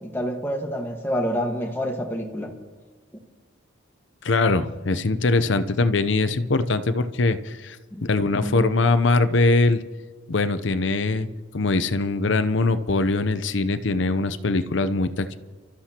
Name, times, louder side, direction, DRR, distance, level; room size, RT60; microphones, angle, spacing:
voice 1, 0.0-2.5 7.9-8.1 8.4-8.7, equal, 10° left, 1 dB, 1.5 m, -28 dB
voice 2, 4.2-9.8 10.3-11.3 11.5-15.4, left 3 dB, 70° left, 11 dB, 0.7 m, -22 dB
29.0 x 13.0 x 2.9 m, 1.3 s
head